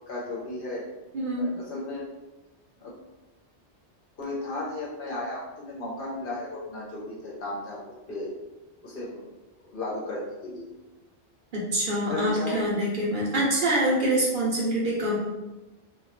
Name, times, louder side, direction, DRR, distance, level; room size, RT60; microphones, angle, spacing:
voice 1, 0.1-0.8 1.4-2.0 2.8-3.0 4.2-7.8 8.1-8.4 8.8-9.3 9.6-10.7 12.0-12.7, left 2 dB, 60° left, -4 dB, 0.7 m, -34 dB
voice 2, 1.1-1.5 11.5-15.2, right 1 dB, 55° right, -5 dB, 0.7 m, -25 dB
2.2 x 2.1 x 2.8 m, 1.1 s
omnidirectional pair, 1.2 m